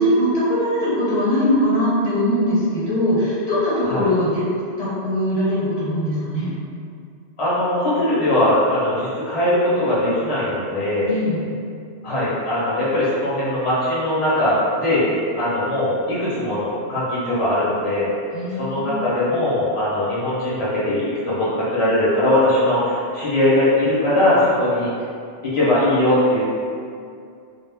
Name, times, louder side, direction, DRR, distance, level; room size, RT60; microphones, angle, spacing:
voice 1, 0.0-6.5 11.0-11.4 18.3-19.0, equal, 65° left, -10 dB, 1.1 m, -21 dB
voice 2, 7.4-11.1 12.0-15.1 15.3-18.1 18.5-24.9 25.4-26.5, left 1 dB, 35° left, -9 dB, 0.7 m, -20 dB
2.4 x 2.0 x 3.3 m, 2.3 s
omnidirectional pair, 1.2 m